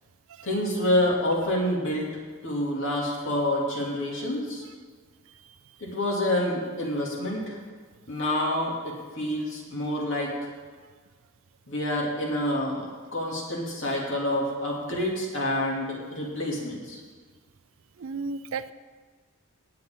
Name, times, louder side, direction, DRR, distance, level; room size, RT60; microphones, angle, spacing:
voice 1, 0.4-2.1 2.4-4.6 5.8-7.6 8.1-10.3 11.7-17.0, left 1 dB, 60° left, -2 dB, 2.7 m, -28 dB
voice 2, 18.0-18.7, right 4 dB, 60° right, 14 dB, 0.4 m, -35 dB
17.5 x 8.2 x 3.8 m, 1.5 s
head